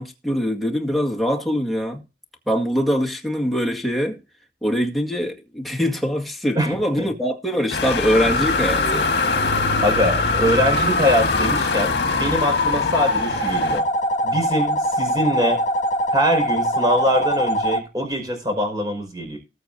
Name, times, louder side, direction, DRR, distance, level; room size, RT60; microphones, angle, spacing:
voice 1, 0.0-2.0 2.5-4.2 4.6-9.1, equal, ahead, 1.9 m, -23 dB
voice 2, 6.5-7.1 9.8-13.8 14.2-15.6 16.1-19.4, equal, 20° right, 5.1 m, -23 dB
sound 1, 7.7-13.8, left 3 dB, 70° left, 1.6 m, -24 dB
sound 2, 8.1-17.8, left 1 dB, 45° left, 2.1 m, -23 dB
20.0 x 6.9 x 2.7 m
head